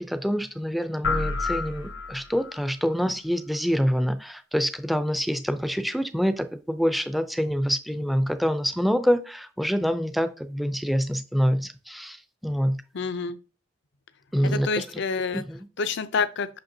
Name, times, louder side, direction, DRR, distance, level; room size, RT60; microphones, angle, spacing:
voice 1, 0.0-12.8 14.3-15.0 15.3-15.7, equal, ahead, 0.4 m, -26 dB
sound 1, 1.0-2.6, left 3 dB, 90° left, 1.2 m, -29 dB
voice 2, 12.9-13.4 14.4-15.4 15.8-16.6, left 4 dB, 65° left, 0.6 m, -28 dB
6.5 x 5.2 x 2.8 m
head